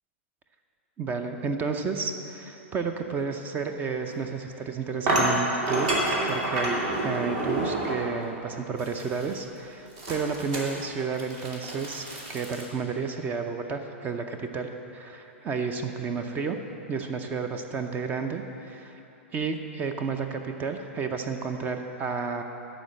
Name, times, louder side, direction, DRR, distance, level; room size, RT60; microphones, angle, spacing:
voice 1, 1.0-5.9 6.3-12.0 12.3-16.6 16.9-19.0 19.3-22.4, right 5 dB, 25° right, 6 dB, 0.6 m, -31 dB
sound 1, 4.1-4.2 5.1-8.2 8.8-9.3 10.0-12.7, right 1 dB, 45° right, 2.0 m, -28 dB
11.5 x 4.3 x 7.4 m, 3.0 s
figure-of-eight pair, 105°, 7 cm